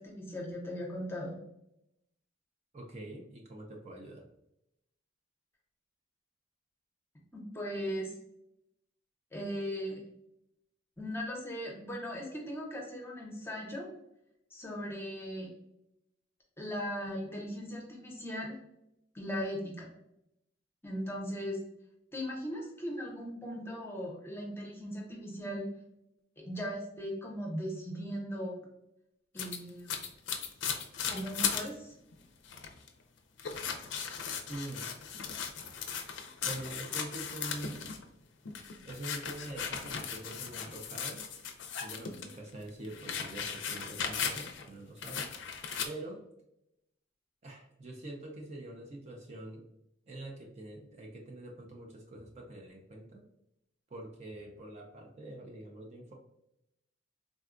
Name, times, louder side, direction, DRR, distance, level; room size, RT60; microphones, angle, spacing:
voice 1, 0.0-1.4 7.3-8.1 9.3-10.0 11.0-13.9 14.5-15.5 16.6-18.6 19.1-19.9 20.8-21.6 22.1-25.7 26.4-28.6 29.3-29.9 31.1-31.9, equal, 10° left, -2 dB, 0.7 m, -38 dB
voice 2, 2.7-4.3 34.5-35.0 36.4-37.8 38.8-41.2 41.8-46.2 47.4-49.7 50.1-53.2 53.9-56.1, right 1 dB, 35° right, 0 dB, 0.4 m, -45 dB
sound 1, 29.4-31.7 32.1-32.2 32.4-32.9 33.4-38.0 38.4-42.3 42.7-44.7 45.0-45.9, left 7 dB, 70° left, 0.4 m, -37 dB
3.6 x 2.2 x 2.4 m, 0.82 s
head